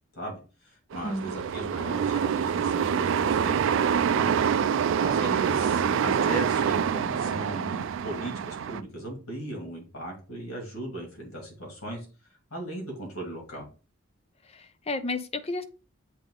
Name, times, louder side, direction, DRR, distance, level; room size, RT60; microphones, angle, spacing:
voice 1, 0.2-3.7 4.0-4.3 5.0-12.1 12.5-13.7, right 1 dB, 85° left, 2.5 m, -37 dB
sound 1, 0.9-8.8, right 7 dB, 65° right, 0.3 m, -26 dB
voice 2, 5.8-6.4 14.5-15.6, left 2 dB, 30° left, 0.6 m, -33 dB
7.5 x 3.6 x 3.8 m
head